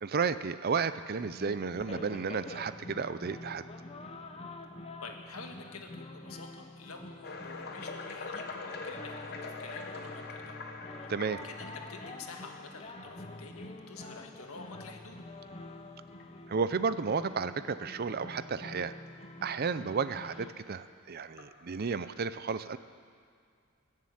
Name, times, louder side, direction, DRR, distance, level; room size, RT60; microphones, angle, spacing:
voice 1, 0.0-3.6 11.1-11.4 16.5-18.9 19.4-22.8, right 5 dB, 45° right, 13 dB, 0.5 m, -32 dB
sound 1, 1.2-20.5, left 2 dB, 30° left, 0.9 m, -47 dB
voice 2, 5.0-10.6 11.0-11.1 11.4-15.2, left 4 dB, 80° left, 3 dB, 1.7 m, -48 dB
sound 2, 7.2-14.1 14.8-14.9 15.5-15.6 16.2-16.3 17.6-17.7 20.5-20.6 21.4-22.1, left 3 dB, 50° left, 1.2 m, -44 dB
20.5 x 7.5 x 8.7 m, 2.2 s
head